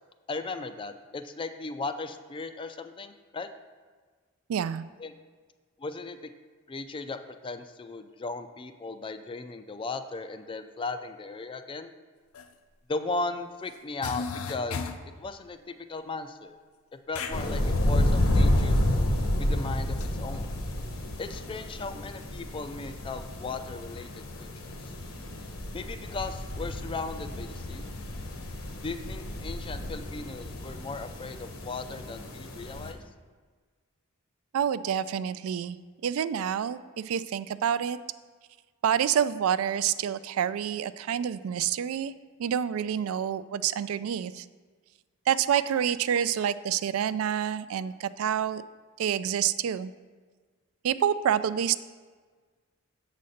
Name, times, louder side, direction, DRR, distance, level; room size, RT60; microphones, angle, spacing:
voice 1, 0.3-3.5 5.0-5.1 5.8-6.3 6.7-11.9 12.9-14.8 15.2-16.6 17.1-18.9 19.4-20.5 21.2-24.9 25.7-27.8 28.8-33.0, left 3 dB, 25° left, 9 dB, 0.3 m, -37 dB
voice 2, 4.5-4.8 34.5-35.8 36.0-38.0 38.8-42.1 42.4-44.5 45.3-48.6 49.0-49.9 50.8-51.8, right 9 dB, 75° right, 16 dB, 0.3 m, -28 dB
sound 1, 12.3-12.5 13.7-13.8 14.0-15.1 17.1-17.4 20.0-20.1, left 5 dB, 85° left, 0.5 m, -35 dB
sound 2, 17.3-32.9, left 1 dB, 70° left, 1.0 m, -30 dB
7.4 x 4.1 x 6.4 m, 1.5 s
head